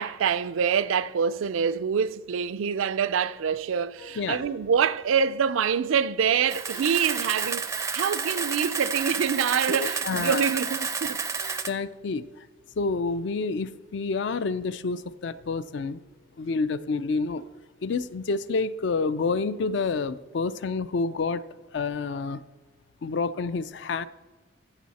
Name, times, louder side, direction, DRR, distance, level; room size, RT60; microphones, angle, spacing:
voice 1, 0.0-11.2, right 7 dB, 80° right, 0.4 m, -25 dB
sound 1, 3.0-5.7 6.2-9.1 9.3-10.7 11.1-13.3 13.6-16.2 16.5-16.6 16.9-20.3, left 1 dB, 75° left, 3.1 m, -53 dB
Camera, 6.5-11.7, right 5 dB, 15° right, 0.4 m, -30 dB
voice 2, 9.7-10.5 11.7-12.2 12.8-16.0 16.4-17.4 17.8-21.4 21.7-22.4 23.0-24.1, left 4 dB, 60° left, 0.4 m, -28 dB
14.5 x 6.3 x 4.1 m
head